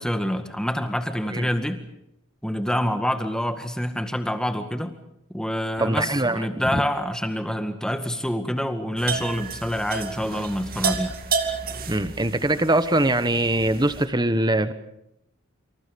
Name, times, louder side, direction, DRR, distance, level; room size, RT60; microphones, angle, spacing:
voice 1, 0.0-1.8 2.4-4.9 5.3-11.1, equal, 5° left, 7 dB, 1.9 m, -26 dB
voice 2, 5.8-6.4 6.7-6.8 11.9-14.7, right 1 dB, 20° right, 12 dB, 1.3 m, -22 dB
sound 1, 9.0-14.1, right 5 dB, 40° right, 2.3 m, -31 dB
28.5 x 26.5 x 5.4 m, 0.81 s
head